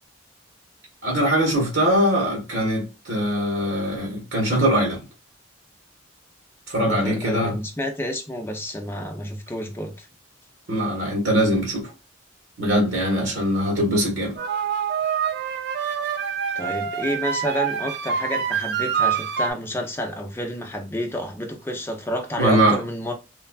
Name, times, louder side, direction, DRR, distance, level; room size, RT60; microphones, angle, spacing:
voice 1, 1.0-5.0 6.7-7.5 10.7-11.9 12.6-14.4 22.4-22.8, equal, 80° right, 1.2 m, -22 dB
voice 2, 6.9-10.1 16.5-23.1, equal, 10° left, 0.4 m, -29 dB
sound 1, 14.4-19.5, right 7 dB, 55° right, 0.3 m, -26 dB
3.2 x 2.3 x 2.2 m
head